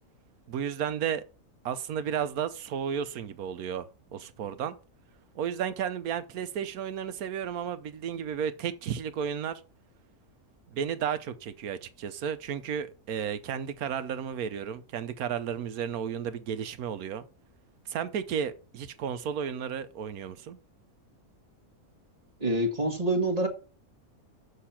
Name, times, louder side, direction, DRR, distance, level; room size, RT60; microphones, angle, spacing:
voice 1, 0.5-1.2 1.6-4.8 5.3-9.6 10.7-17.3 17.9-20.6, right 8 dB, 80° right, 1.3 m, -33 dB
voice 2, 22.4-23.5, right 1 dB, 25° right, 1.5 m, -26 dB
6.8 x 6.7 x 5.7 m
omnidirectional pair, 1.6 m